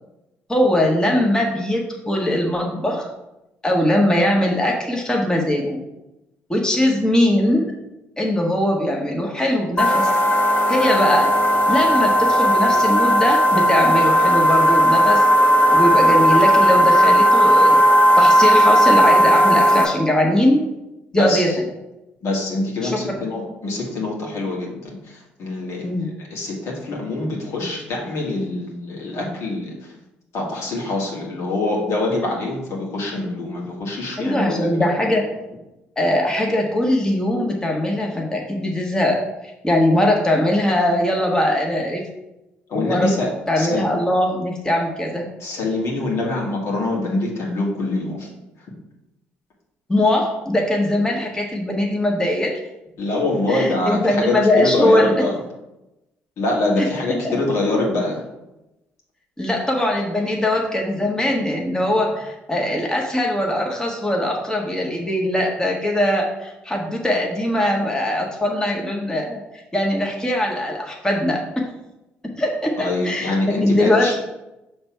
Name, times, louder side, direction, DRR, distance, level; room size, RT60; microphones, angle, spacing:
voice 1, 0.5-3.1 3.6-5.8 6.5-7.7 8.2-10.1 10.7-11.4 11.7-15.2 15.7-17.8 18.2-20.6 21.1-21.5 22.8-23.0 25.8-26.1 34.2-35.3 36.0-42.0 42.7-43.2 43.5-45.3 49.9-52.6 53.5-55.2 56.8-57.3 59.4-69.4 69.7-71.7 72.4-74.2, left 1 dB, 15° left, 0 dB, 1.5 m, -21 dB
sound 1, 9.8-19.9, equal, 40° left, 1.3 m, -15 dB
voice 2, 21.1-21.6 22.2-29.7 30.3-34.9 42.7-43.8 45.4-48.3 53.0-55.4 56.4-58.2 72.8-74.1, left 2 dB, 65° left, -2 dB, 1.9 m, -24 dB
5.7 x 3.5 x 5.7 m, 0.94 s
supercardioid pair, 60°, 5 cm